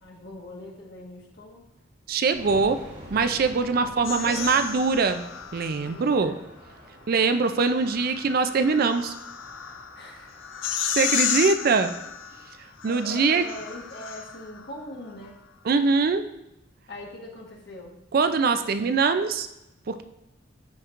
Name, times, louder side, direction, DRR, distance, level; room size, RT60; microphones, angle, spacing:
voice 1, 0.0-1.7 4.0-4.6 5.8-6.4 9.9-10.4 12.4-15.4 16.9-18.0, left 1 dB, 55° left, -1 dB, 1.4 m, -41 dB
voice 2, 2.1-2.8 3.1-5.3 5.5-6.3 7.1-9.1 11.0-11.9 12.8-13.5 15.6-16.2 18.1-19.5 19.9-20.0, right 4 dB, 50° right, 9 dB, 0.4 m, -22 dB
sound 1, 2.3-13.2, equal, 70° right, 2.5 m, -48 dB
sound 2, 4.0-6.0 7.5-14.6, left 9 dB, 75° left, 0.5 m, -33 dB
11.5 x 4.4 x 2.5 m, 0.88 s
head